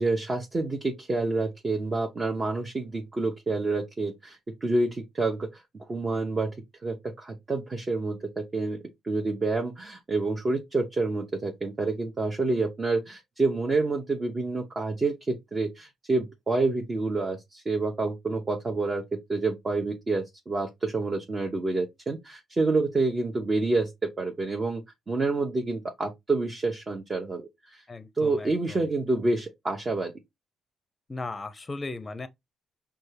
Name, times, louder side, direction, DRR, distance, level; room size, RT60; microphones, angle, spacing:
voice 1, 0.0-6.6 6.8-8.8 9.0-27.8 28.2-30.1, right 3 dB, 30° right, 0.8 m, -28 dB
voice 2, 27.9-28.9 31.1-32.3, left 3 dB, 25° left, 0.6 m, -37 dB
5.3 x 2.3 x 3.2 m
cardioid pair, 90°, 0 cm